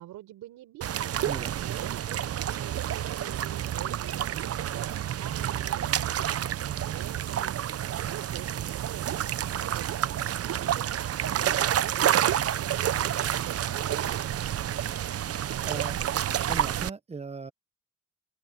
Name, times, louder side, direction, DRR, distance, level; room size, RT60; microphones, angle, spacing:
voice 1, 0.0-1.2 1.6-14.5, right 14 dB, 90° right, 4.8 m, -46 dB
sound 1, 0.8-16.9, right 10 dB, 50° right, 0.8 m, -29 dB
voice 2, 15.2-16.2 16.5-17.5, right 4 dB, 20° right, 0.8 m, -38 dB
cardioid pair, 90°, 30 cm